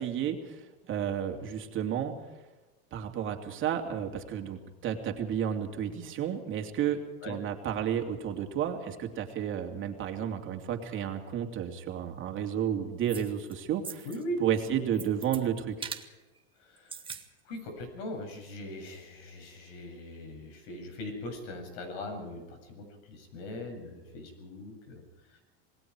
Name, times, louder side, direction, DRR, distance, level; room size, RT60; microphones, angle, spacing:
voice 1, 0.0-2.1 2.9-14.0 14.4-15.9, right 9 dB, 40° right, 3 dB, 3.0 m, -32 dB
sound 1, 13.1-13.5 13.8-14.2 14.6-15.4 15.8-16.1 16.8-17.3 17.6-17.7, right 6 dB, 15° right, 1.7 m, -41 dB
voice 2, 14.0-14.4 14.7-15.0 16.6-17.0 17.5-25.4, left 1 dB, 70° left, 5 dB, 7.7 m, -40 dB
28.0 x 19.5 x 4.8 m, 1.2 s
supercardioid pair, 125°, 31 cm